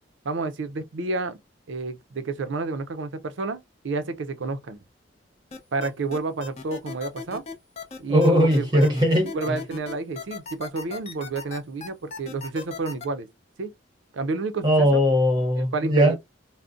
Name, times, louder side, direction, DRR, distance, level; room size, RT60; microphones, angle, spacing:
voice 1, 0.2-1.4 1.7-4.8 5.7-7.4 8.0-8.7 9.3-13.3 13.6-13.7 14.1-15.0 15.6-16.2, right 3 dB, 80° right, 0.5 m, -30 dB
sound 1, 5.5-13.0, left 4 dB, 35° left, 0.7 m, -37 dB
voice 2, 8.1-9.6 14.6-16.2, equal, 25° right, 0.8 m, -20 dB
3.7 x 2.0 x 2.4 m
head